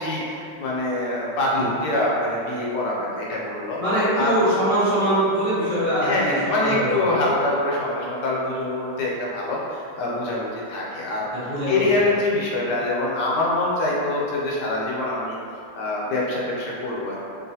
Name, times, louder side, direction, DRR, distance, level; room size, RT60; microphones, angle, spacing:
voice 1, 0.0-1.5 1.8-3.8 4.2-4.3 6.0-11.3 11.7-15.4 15.7-17.2, left 2 dB, 70° left, -4 dB, 1.2 m, -25 dB
voice 2, 3.8-7.0 11.3-12.0, right 1 dB, 25° left, -15 dB, 0.8 m, -23 dB
3.0 x 2.4 x 2.7 m, 2.6 s
omnidirectional pair, 2.1 m